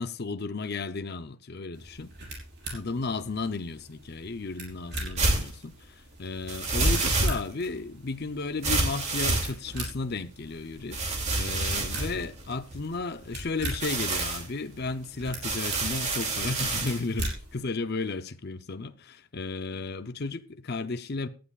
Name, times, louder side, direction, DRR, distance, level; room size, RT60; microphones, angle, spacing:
voice 1, 0.0-2.1 2.7-11.0 11.4-21.3, left 3 dB, 45° left, 0.7 m, -34 dB
sound 1, 1.7-17.6, right 2 dB, 50° right, 5.6 m, -42 dB
sound 2, 5.2-5.5 6.5-7.7 8.6-9.9 10.9-13.0 13.7-14.5 15.4-17.0, right 2 dB, 30° right, 2.7 m, -28 dB
18.0 x 12.5 x 2.5 m
head